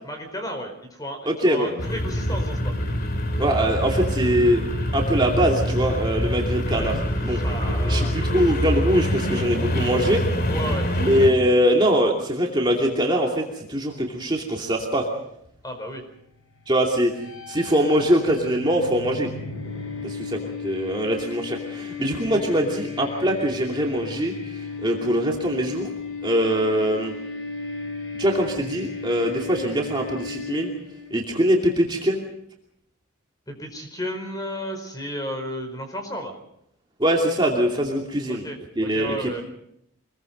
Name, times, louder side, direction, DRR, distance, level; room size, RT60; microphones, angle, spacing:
voice 1, 0.0-2.7 7.3-8.1 10.5-10.9 15.6-16.0 33.5-36.3 38.3-39.4, equal, 15° left, 5 dB, 4.7 m, -33 dB
voice 2, 1.2-1.7 3.4-4.6 4.9-7.4 7.9-10.2 11.0-13.4 13.7-15.1 16.7-17.1 17.5-19.3 20.0-24.3 24.8-25.9 26.2-27.1 28.2-30.7 31.1-32.2 37.0-38.5 38.8-39.3, equal, 20° right, -1 dB, 2.7 m, -22 dB
sound 1, 1.8-11.3, equal, 45° left, 2.6 m, -25 dB
sound 2, 17.1-31.1, left 4 dB, 85° left, 5.8 m, -35 dB
25.5 x 21.5 x 5.3 m, 0.75 s
head